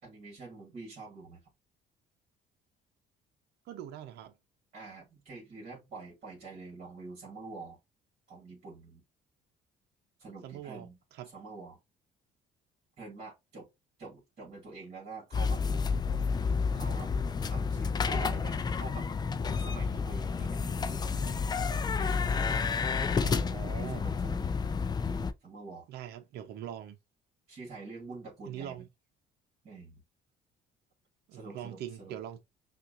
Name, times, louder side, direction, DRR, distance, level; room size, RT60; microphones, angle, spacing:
voice 1, 0.0-1.4 4.7-7.8 8.3-9.0 10.2-11.0 11.3-11.8 13.0-13.7 14.0-15.6 16.7-17.1 17.5-19.1 19.5-21.6 23.4-24.4 24.8-25.9 27.5-28.8 29.6-30.0 31.3-32.2, right 3 dB, 40° right, 2.2 m, -46 dB
voice 2, 3.7-4.3 10.4-11.3 23.2-24.0 25.9-27.0 28.5-28.9 31.3-32.4, right 10 dB, 75° right, 0.8 m, -42 dB
sound 1, 15.3-25.3, left 5 dB, 25° left, 0.5 m, -30 dB
5.7 x 2.5 x 2.5 m
cardioid pair, 110°, 17 cm